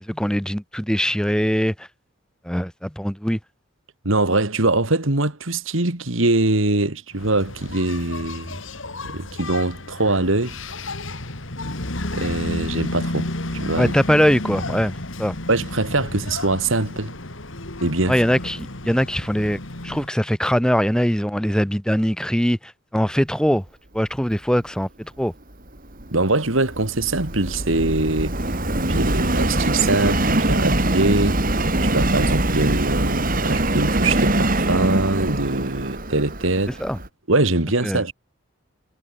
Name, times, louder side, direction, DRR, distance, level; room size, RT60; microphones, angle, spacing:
voice 1, 0.1-1.7 2.5-3.4 13.8-14.9 15.2-15.4 18.1-22.6 22.9-23.6 23.9-25.3 36.8-37.0 37.8-38.0, equal, 5° left, 3.9 m, -21 dB
voice 2, 4.0-8.6 9.0-10.5 12.1-13.9 15.5-17.1 17.8-18.2 26.1-28.4 28.8-31.4 31.8-36.8 37.3-38.1, right 2 dB, 75° right, 2.5 m, -22 dB
Engine, 7.1-20.1, left 2 dB, 70° left, 3.0 m, -32 dB
Subway metro underground, 25.8-37.1, right 1 dB, 45° right, 3.8 m, -23 dB
head